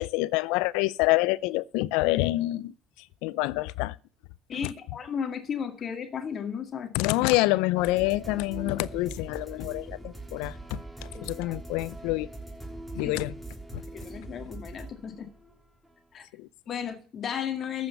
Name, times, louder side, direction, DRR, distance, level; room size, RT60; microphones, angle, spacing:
voice 1, 0.0-4.0 4.6-4.7 6.9-12.3 12.9-13.3 13.7-13.8 16.3-16.5, left 20 dB, 75° left, 0.5 m, -27 dB
voice 2, 4.5-6.9 11.1-11.6 13.0-13.1 13.9-15.3 16.1-16.3 16.7-17.9, left 7 dB, 45° left, 2.2 m, -34 dB
sound 1, 7.7-15.9, right 2 dB, ahead, 3.2 m, -41 dB
14.0 x 5.1 x 6.9 m
hypercardioid pair, 65°, 0 cm